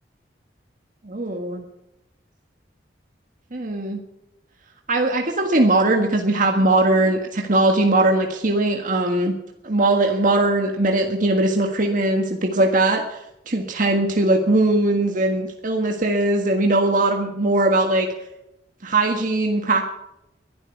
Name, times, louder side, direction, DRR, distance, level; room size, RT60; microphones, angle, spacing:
voice 1, 1.0-1.6 3.5-4.0 4.9-9.3 9.6-13.2 13.5-18.1 18.8-19.9, right 2 dB, 50° right, 2 dB, 1.7 m, -20 dB
22.5 x 12.0 x 4.7 m, 0.88 s
head